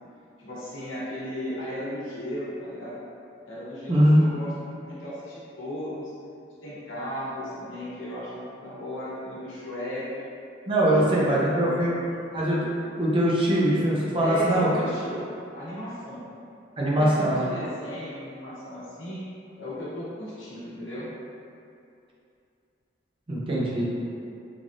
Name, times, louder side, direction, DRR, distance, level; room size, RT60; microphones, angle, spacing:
voice 1, 0.4-3.0 3.5-6.1 6.6-10.2 10.8-11.9 14.2-16.3 16.8-19.2 19.6-21.1, left 1 dB, 85° left, -9 dB, 1.0 m, -36 dB
voice 2, 3.9-4.3 10.7-11.9 12.3-12.6 13.0-14.7 16.8-17.5 23.3-23.9, right 1 dB, 25° right, -6 dB, 0.5 m, -22 dB
3.2 x 2.4 x 2.6 m, 2.6 s
head